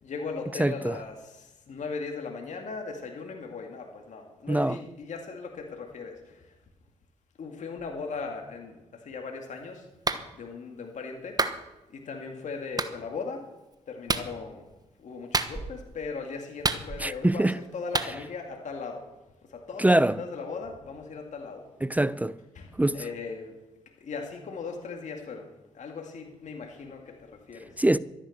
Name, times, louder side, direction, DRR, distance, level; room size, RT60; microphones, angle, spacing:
voice 1, 0.0-6.4 7.4-9.9 10.3-11.4 11.9-13.5 13.9-14.7 15.0-19.1 19.5-21.7 22.5-23.6 24.0-27.8, left 4 dB, 60° left, 2.2 m, -38 dB
voice 2, 0.6-1.0 4.5-4.8 17.0-17.6 19.8-20.2 21.8-22.4 22.8-23.0 27.8-28.0, right 1 dB, 10° right, 0.5 m, -23 dB
Clapping, 10.1-10.3 11.4-11.6 12.8-12.9 14.1-14.3 15.3-15.8 16.6-17.2 17.9-18.1, right 3 dB, 30° right, 1.2 m, -28 dB
13.0 x 10.0 x 6.5 m
supercardioid pair, 50°, 14 cm